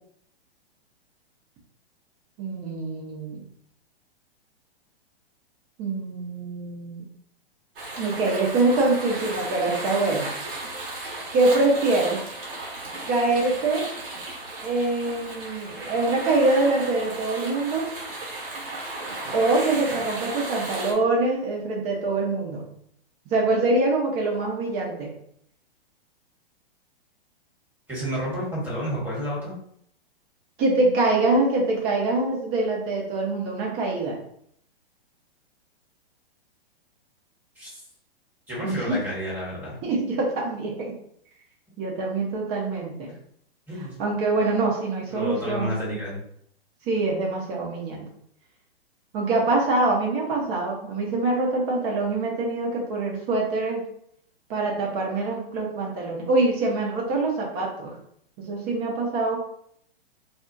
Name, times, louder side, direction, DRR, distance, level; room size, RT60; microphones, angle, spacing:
voice 1, 2.4-3.4 5.8-7.0 8.0-10.3 11.3-12.2 13.1-13.8 14.6-17.9 19.3-22.6 23.3-25.1 30.6-34.2 38.6-39.0 39.8-40.9 41.8-43.1 44.0-45.8 46.9-48.0 49.1-53.8 54.5-57.9 58.4-59.4, right 2 dB, 35° right, -2 dB, 1.0 m, -24 dB
sound 1, 7.8-20.9, right 2 dB, 60° right, 1.2 m, -35 dB
voice 2, 27.9-29.5 37.5-37.8 38.5-39.8 43.7-44.0 45.1-46.2, equal, 5° right, -8 dB, 1.4 m, -30 dB
2.7 x 2.3 x 2.6 m, 0.67 s
hypercardioid pair, 120°, 31 cm